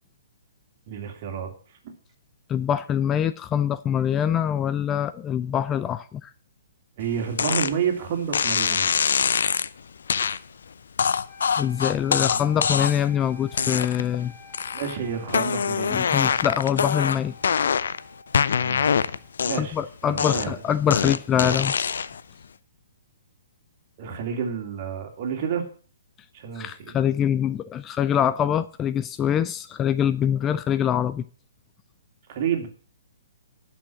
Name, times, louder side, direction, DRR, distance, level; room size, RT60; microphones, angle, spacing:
voice 1, 0.9-1.5 1.8-1.9 7.0-8.9 12.2-12.4 14.7-16.0 18.6-19.1 19.4-19.8 20.0-20.6 24.0-25.7 26.3-26.9 32.3-32.7, right 7 dB, 40° right, 2.7 m, -30 dB
voice 2, 2.5-6.3 11.6-14.3 15.9-17.3 19.6-21.7 26.6-31.2, left 9 dB, 20° left, 0.4 m, -24 dB
sound 1, 7.4-7.7 8.3-9.7 10.1-10.4 11.0-13.1 13.5-14.2 14.5-15.0 15.3-18.0 18.3-19.8 20.2-22.2, left 6 dB, 65° left, 0.6 m, -24 dB
sound 2, 11.3-19.3, left 3 dB, 45° left, 3.4 m, -49 dB
11.0 x 6.5 x 7.5 m
figure-of-eight pair, 125°, 0 cm